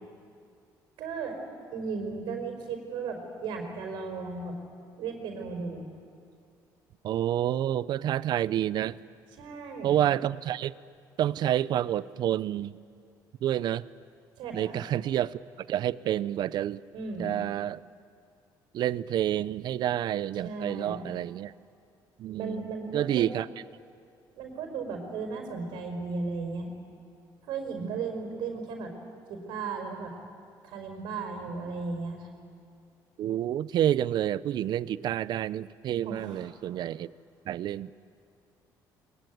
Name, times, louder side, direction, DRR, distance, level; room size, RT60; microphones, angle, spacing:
voice 1, 1.0-1.4 1.7-4.5 5.0-5.9 9.4-10.0 14.4-14.8 16.9-17.3 20.4-21.1 22.4-23.3 24.3-26.7 27.4-28.9 29.3-30.1 30.6-32.3 36.0-36.5, right 4 dB, 80° right, 3 dB, 4.8 m, -35 dB
voice 2, 7.0-9.0 9.8-10.7 11.2-12.7 13.4-13.8 14.5-15.4 15.7-16.8 17.2-17.8 18.7-21.5 22.2-22.7 22.9-23.5 27.8-28.0 33.2-37.1 37.5-37.9, right 11 dB, 60° right, 18 dB, 0.6 m, -28 dB
22.5 x 22.5 x 9.3 m, 2.3 s
cardioid pair, 110°, 8 cm